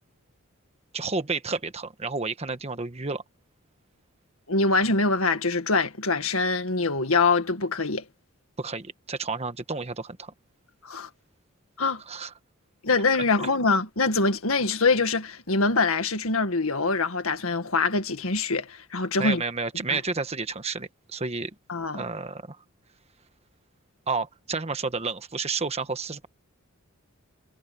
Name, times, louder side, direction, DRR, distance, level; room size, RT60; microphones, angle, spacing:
voice 1, 0.9-3.2 8.6-10.3 12.1-12.3 19.2-21.5 21.9-22.6 24.1-26.3, right 4 dB, 30° right, 1.3 m, -31 dB
voice 2, 4.5-8.0 10.8-11.1 11.8-12.0 12.8-19.4 19.9-20.0 21.7-22.0, left 3 dB, 70° left, 1.9 m, -24 dB
head